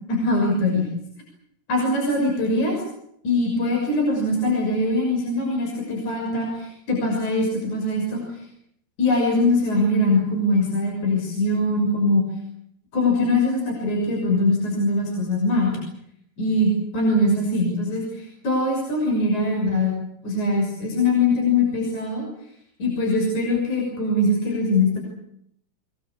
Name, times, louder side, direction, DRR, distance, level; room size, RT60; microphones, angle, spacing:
voice 1, 0.1-0.9 1.7-2.8 3.2-8.2 9.0-12.2 12.9-15.8 16.4-20.0 20.2-22.2 22.8-25.0, left 2 dB, 45° left, 0 dB, 7.5 m, -22 dB
23.0 x 23.0 x 8.5 m, 0.74 s
omnidirectional pair, 4.7 m